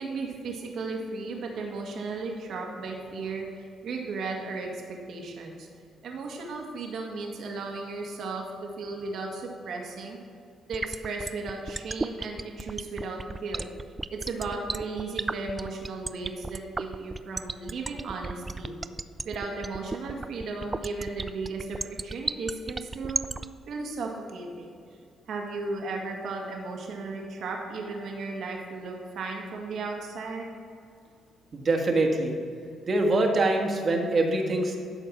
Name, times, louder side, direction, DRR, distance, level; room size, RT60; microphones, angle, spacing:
voice 1, 0.0-5.7 6.0-10.2 10.7-13.7 14.1-18.8 19.2-23.3 23.7-24.7 25.3-30.6, right 3 dB, 70° right, 0 dB, 1.6 m, -35 dB
sound 1, 10.7-23.5, right 3 dB, 25° right, 0.3 m, -32 dB
voice 2, 31.5-32.3 32.8-34.8, right 2 dB, 45° right, 2 dB, 1.5 m, -24 dB
12.5 x 4.6 x 6.1 m, 2.4 s
cardioid pair, 90°, 0 cm